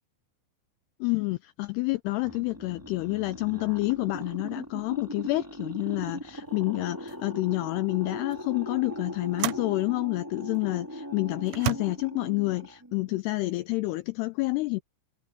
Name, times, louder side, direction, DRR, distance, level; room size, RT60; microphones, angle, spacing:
voice 1, 1.0-14.8, left 22 dB, 85° left, 2.4 m, -29 dB
sound 1, 2.1-13.2, equal, 5° right, 1.9 m, -40 dB
sound 2, 6.5-6.6 7.1-7.3 8.3-8.5 9.4-9.8 10.6-10.7 11.5-11.8, right 17 dB, 75° right, 2.7 m, -32 dB
omnidirectional pair, 5.3 m